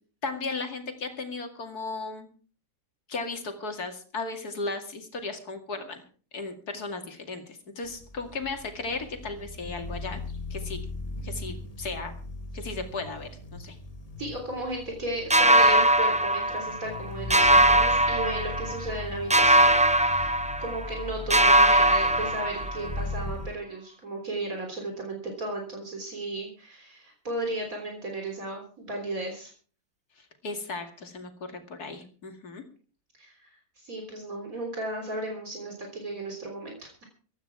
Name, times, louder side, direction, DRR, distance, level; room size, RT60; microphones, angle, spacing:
voice 1, 0.2-2.3 3.1-6.0 6.3-10.2 10.5-10.8 11.2-12.1 12.5-13.8 30.2-32.6, left 3 dB, 80° left, 5 dB, 2.9 m, -35 dB
sound 1, 7.8-23.5, left 2 dB, 25° left, 1.4 m, -39 dB
voice 2, 14.2-29.5 33.1-37.0, right 1 dB, 65° right, 2 dB, 4.0 m, -35 dB
sound 2, 15.3-17.0 17.3-19.0 19.3-21.0 21.3-23.0, right 1 dB, 10° right, 0.4 m, -21 dB
16.0 x 13.0 x 4.8 m, 0.41 s
omnidirectional pair, 1.6 m